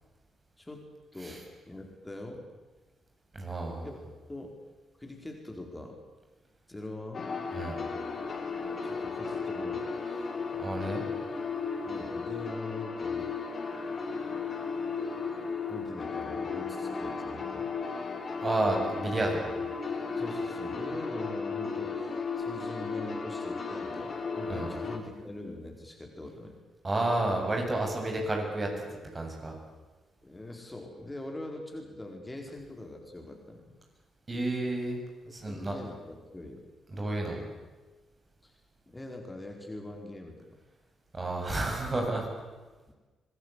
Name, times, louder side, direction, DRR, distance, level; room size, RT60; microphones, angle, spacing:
voice 1, 1.1-2.4 3.8-4.0 4.3-4.5 5.0-6.0 6.7-7.3 8.8-9.9 11.8-13.3 15.7-17.7 20.2-26.6 30.2-33.7 35.5-36.6 38.4-38.6 38.9-40.6, left 2 dB, 15° left, 3 dB, 4.6 m, -43 dB
voice 2, 3.3-3.9 7.5-7.8 10.6-11.0 18.4-19.5 24.5-24.8 26.8-28.7 29.1-29.6 34.3-35.0 35.3-35.8 36.9-37.4 41.1-42.3, right 2 dB, 35° right, 1 dB, 7.6 m, -31 dB
sound 1, 7.1-25.0, left 4 dB, 45° left, 3.6 m, -35 dB
25.0 x 19.0 x 8.4 m, 1.2 s
hypercardioid pair, 40°, 0 cm